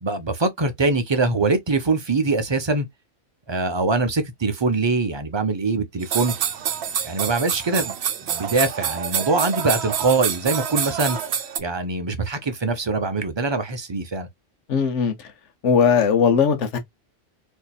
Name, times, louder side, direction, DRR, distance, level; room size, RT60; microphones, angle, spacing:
voice 1, 0.0-2.9 3.5-6.3 7.0-8.0 8.3-11.2 11.6-14.3, right 3 dB, 30° right, 0.5 m, -23 dB
sound 1, 6.0-11.6, right 8 dB, 65° right, 0.9 m, -27 dB
voice 2, 14.7-15.1 15.6-16.8, left 6 dB, 75° left, 1.2 m, -18 dB
4.3 x 2.7 x 2.2 m
omnidirectional pair, 1.3 m